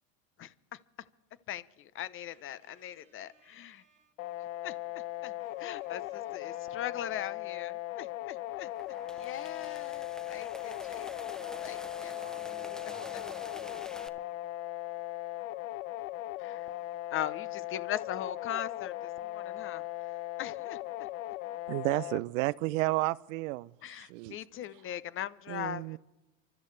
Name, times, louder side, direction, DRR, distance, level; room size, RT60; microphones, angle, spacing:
voice 1, 0.4-0.8 1.5-1.6 1.9-3.8 4.6-12.1 16.4-16.7 17.1-19.8 20.4-20.8 23.8-26.0, left 11 dB, 30° left, 0.8 m, -40 dB
voice 2, 2.3-4.1 5.4-7.3 12.1-13.8 20.7-20.9, right 2 dB, 15° right, 4.2 m, -58 dB
sound 1, 4.2-22.2, left 15 dB, 65° left, 0.9 m, -38 dB
sound 2, 8.5-14.1, equal, ahead, 0.5 m, -48 dB
voice 3, 21.7-24.4 25.5-26.0, right 20 dB, 60° right, 0.5 m, -32 dB
28.0 x 13.5 x 3.3 m
hypercardioid pair, 110°, 43 cm